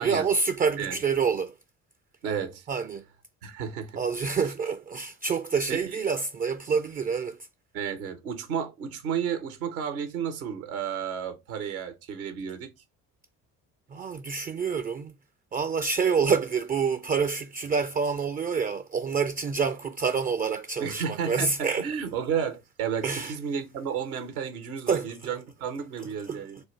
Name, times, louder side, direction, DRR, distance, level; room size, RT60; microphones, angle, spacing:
voice 1, 0.0-1.5 2.7-3.0 4.0-7.4 13.9-15.1 15.5-21.9 23.0-23.3 24.9-25.1 26.2-26.4, right 5 dB, 25° right, 0.4 m, -27 dB
voice 2, 2.2-2.7 3.4-4.5 5.7-5.8 7.7-12.7 20.8-26.6, right 7 dB, 85° right, 1.0 m, -32 dB
4.7 x 2.4 x 3.1 m
hypercardioid pair, 50°, 42 cm